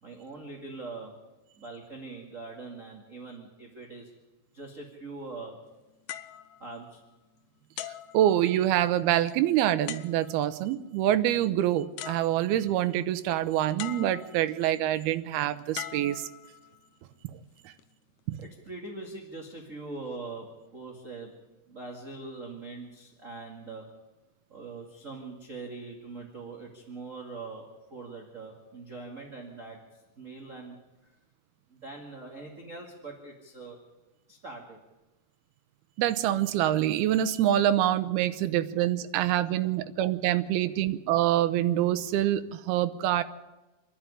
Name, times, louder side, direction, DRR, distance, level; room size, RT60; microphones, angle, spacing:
voice 1, 0.0-1.1 1.6-4.1 4.5-5.6 6.6-7.0 18.4-21.3 21.7-23.9 24.5-31.1 31.7-33.8 34.3-34.8, right 3 dB, 25° right, 0 dB, 2.1 m, -42 dB
sound 1, 6.1-7.3 7.8-8.9 9.9-10.6 11.6-11.7 12.0-12.8 13.8-14.6 15.7-16.9 17.6-17.8, left 12 dB, 80° left, 1.7 m, -42 dB
voice 2, 8.1-16.2 17.7-17.8 36.0-43.2, right 12 dB, 90° right, 10 dB, 2.7 m, -26 dB
27.0 x 11.0 x 9.9 m, 1.1 s
omnidirectional pair, 4.3 m